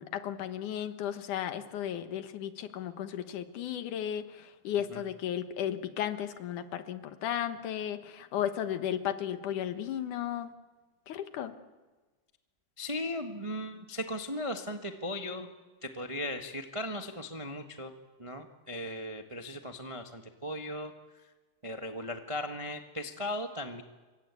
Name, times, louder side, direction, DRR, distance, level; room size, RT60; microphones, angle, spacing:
voice 1, 0.0-10.5 11.1-11.5, left 10 dB, 70° left, 10 dB, 2.8 m, -34 dB
voice 2, 12.8-15.5 15.8-17.9 18.2-20.9 21.6-23.8, left 1 dB, 50° right, 6 dB, 0.3 m, -37 dB
27.5 x 24.5 x 8.5 m, 1.3 s
omnidirectional pair, 3.7 m